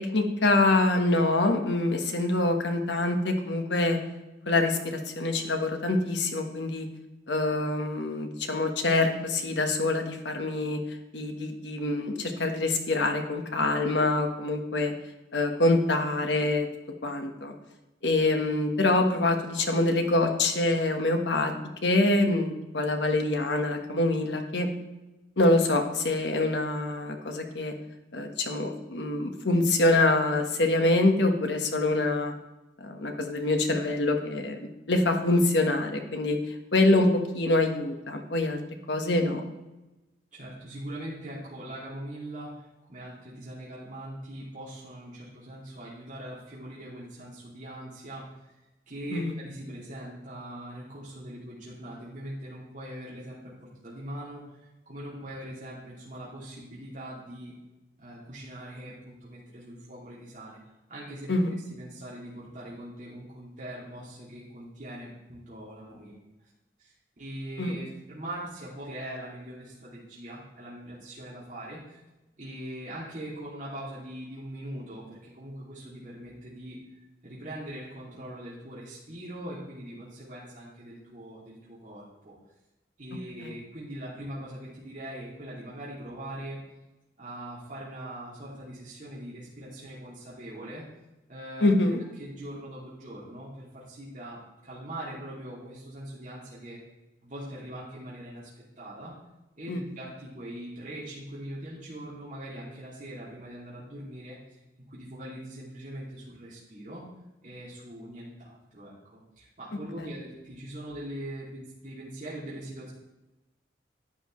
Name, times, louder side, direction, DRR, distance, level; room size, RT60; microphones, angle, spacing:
voice 1, 0.0-4.0 4.5-6.9 7.3-10.8 11.1-14.9 15.3-16.7 17.0-17.5 18.0-21.5 21.8-24.7 25.4-27.7 28.1-32.3 32.8-34.6 34.9-36.4 36.7-38.6 38.9-39.4 49.1-49.3 61.3-61.6 67.6-67.8 83.4-83.5 91.6-92.0 99.7-99.8 110.0-110.1, left 2 dB, 85° left, 4 dB, 1.4 m, -25 dB
voice 2, 40.3-42.5 42.9-48.2 48.9-54.4 54.9-57.5 58.0-60.6 60.9-61.3 61.7-66.2 66.8-66.9 67.2-72.0 72.4-76.8 77.2-82.3 83.0-86.6 87.2-90.8 91.3-91.7 92.2-94.4 94.6-96.8 97.2-98.5 98.8-99.1 99.6-104.4 104.9-107.0 107.4-112.9, right 1 dB, 45° right, -7 dB, 2.6 m, -41 dB
11.5 x 9.7 x 3.2 m, 1.0 s
head